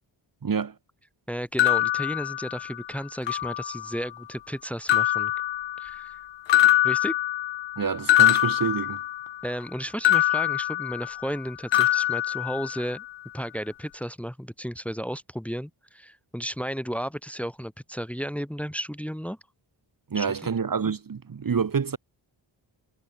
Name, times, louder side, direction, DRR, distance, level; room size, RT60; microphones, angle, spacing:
voice 1, 0.4-0.7 7.8-9.0 20.1-22.0, right 6 dB, 40° right, 1.4 m, -27 dB
voice 2, 1.3-5.3 5.8-6.2 6.8-7.1 9.4-13.0 13.3-19.4 20.1-20.5, equal, 5° left, 1.6 m, -33 dB
sound 1, 1.6-2.9 3.3-4.0 4.9-6.2 6.5-9.4 10.0-11.4 11.7-13.1, left 13 dB, 60° left, 0.6 m, -24 dB
cardioid pair, 65°, 50 cm